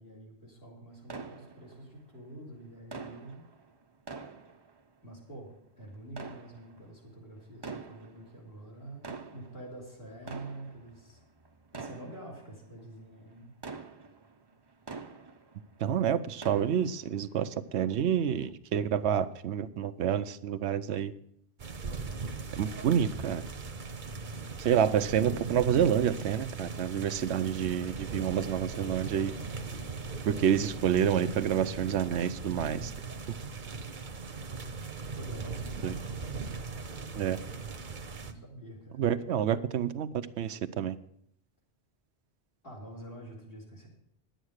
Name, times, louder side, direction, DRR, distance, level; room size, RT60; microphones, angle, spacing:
voice 1, 0.0-3.5 5.0-11.2 11.7-13.5 35.2-36.4 38.2-39.0 42.6-43.9, right 1 dB, 55° left, -1 dB, 3.6 m, -47 dB
sound 1, 1.1-2.2 2.9-5.2 6.0-7.1 7.5-8.5 8.9-15.8 16.1-17.3 17.7-17.8 18.4-18.5, right 4 dB, 25° right, 0.6 m, -46 dB
voice 2, 15.8-21.1 22.6-23.4 24.6-29.3 30.3-32.9 35.8-35.9 37.2-37.4 39.0-40.1 40.4-41.0, right 9 dB, 80° right, 12 dB, 0.9 m, -28 dB
sound 2, 21.6-38.3, right 4 dB, 50° right, 1.0 m, -39 dB
10.5 x 9.0 x 6.4 m, 0.69 s
omnidirectional pair, 1.1 m